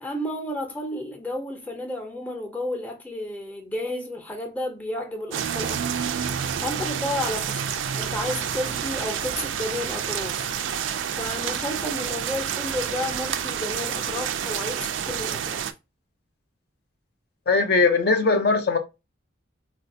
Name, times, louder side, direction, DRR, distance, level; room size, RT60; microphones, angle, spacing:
voice 1, 0.0-6.0 6.6-10.4 11.2-15.6, left 1 dB, 10° left, 0.5 m, -32 dB
sound 1, 5.3-15.7, right 8 dB, 75° right, 0.4 m, -29 dB
voice 2, 17.5-18.8, left 4 dB, 50° left, 0.6 m, -20 dB
4.1 x 2.2 x 2.6 m
head